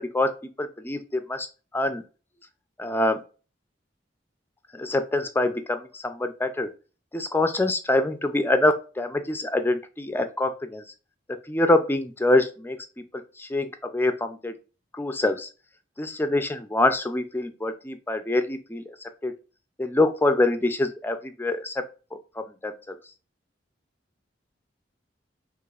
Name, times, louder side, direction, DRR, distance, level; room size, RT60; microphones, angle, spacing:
voice 1, 0.0-1.5 1.7-2.0 2.8-3.2 4.7-6.7 7.1-10.8 11.5-12.8 13.4-14.5 14.9-15.5 16.0-18.8 19.2-19.3 19.8-21.8 22.4-23.0, left 2 dB, 10° left, 8 dB, 0.4 m, -25 dB
5.7 x 3.0 x 2.4 m, 0.34 s
head